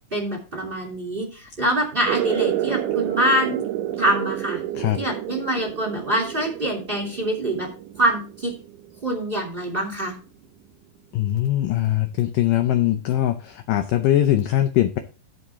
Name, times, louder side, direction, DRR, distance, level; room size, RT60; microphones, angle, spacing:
voice 1, 0.1-3.6 4.0-4.6 5.0-7.7 8.0-8.5 9.0-10.1, right 1 dB, 15° right, 2 dB, 2.4 m, -25 dB
sound 1, 2.0-9.2, right 12 dB, 75° right, 2.0 m, -29 dB
voice 2, 11.1-15.0, left 13 dB, 75° left, 8 dB, 2.0 m, -21 dB
12.0 x 7.0 x 3.6 m, 0.34 s
omnidirectional pair, 4.6 m